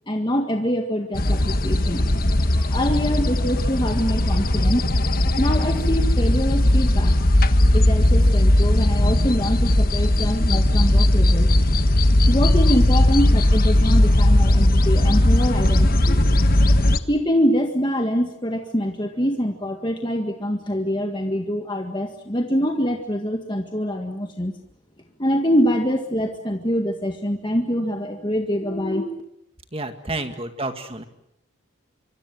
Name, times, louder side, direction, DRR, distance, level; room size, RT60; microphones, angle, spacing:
voice 1, 0.1-2.0 2.5-4.9 5.4-7.1 7.7-11.5 12.3-16.3 17.1-24.5 25.2-29.2, equal, 20° left, 3 dB, 1.8 m, -24 dB
sound 1, 1.1-17.0, left 1 dB, 45° left, 1.3 m, -18 dB
voice 2, 29.7-31.0, right 2 dB, 25° right, 8 dB, 2.0 m, -30 dB
25.5 x 25.0 x 7.8 m, 0.74 s
head